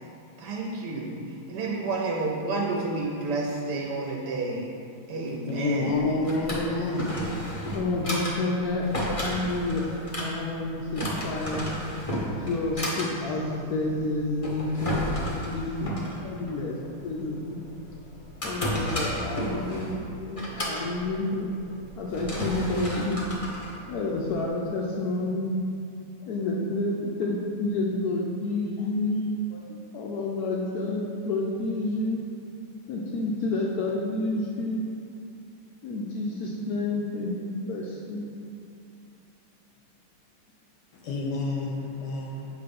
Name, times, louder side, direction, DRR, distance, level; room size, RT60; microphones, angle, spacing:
voice 1, 0.4-1.2 1.5-4.7 5.1-6.0, right 3 dB, 70° right, -2 dB, 1.0 m, -30 dB
voice 2, 5.5-7.1 41.0-42.5, left 2 dB, 70° left, 0 dB, 1.1 m, -28 dB
Drawer open or close, 6.0-24.5, equal, 45° left, 0.4 m, -33 dB
voice 3, 7.7-9.9 10.2-11.7 12.1-15.9 16.2-17.6 18.4-21.5 22.0-23.2 23.9-25.5 26.2-32.2 32.9-34.8 35.8-38.3, left 2 dB, 85° left, -2 dB, 0.8 m, -29 dB
7.7 x 3.1 x 5.1 m, 2.5 s
omnidirectional pair, 2.2 m